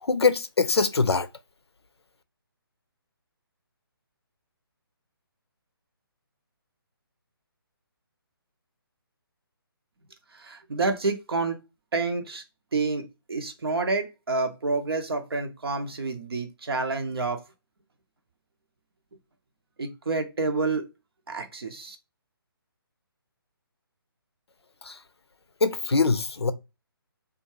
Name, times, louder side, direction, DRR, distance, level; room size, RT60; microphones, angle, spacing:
voice 1, 0.0-1.3 24.8-25.0 25.6-26.5, left 4 dB, 90° left, 0.5 m, -23 dB
voice 2, 10.3-11.6 11.9-12.4 12.7-13.0 13.3-17.5 19.8-20.8 21.3-22.0, right 3 dB, 70° right, 0.7 m, -28 dB
2.5 x 2.3 x 2.9 m
figure-of-eight pair, 145°, 13 cm